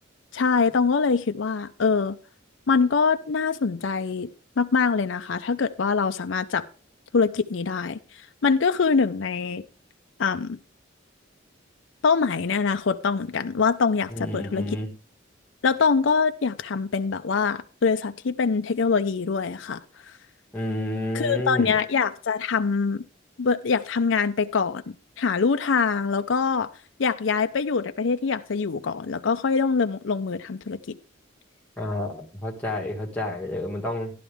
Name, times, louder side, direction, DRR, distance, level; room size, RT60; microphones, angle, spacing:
voice 1, 0.3-2.2 2.7-4.3 4.6-6.7 7.1-8.0 8.4-9.6 10.2-10.6 12.0-14.7 15.6-19.8 21.1-23.0 23.4-24.8 25.2-26.7 27.0-30.9, left 5 dB, 70° left, 0.5 m, -24 dB
voice 2, 14.1-14.9 20.5-21.7 31.8-34.1, left 1 dB, 5° left, 1.8 m, -30 dB
13.0 x 11.0 x 3.5 m
head